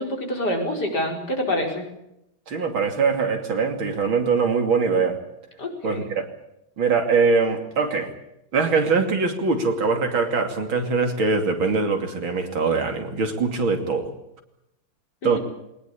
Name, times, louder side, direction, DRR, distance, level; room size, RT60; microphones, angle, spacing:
voice 1, 0.0-1.8 5.6-6.1 15.2-15.4, left 1 dB, 55° left, 2 dB, 5.4 m, -26 dB
voice 2, 2.5-5.2 5.8-6.3 6.8-8.1 8.5-14.1 15.2-15.4, right 4 dB, 80° right, 5 dB, 3.5 m, -22 dB
22.0 x 19.5 x 8.5 m, 0.85 s
omnidirectional pair, 2.2 m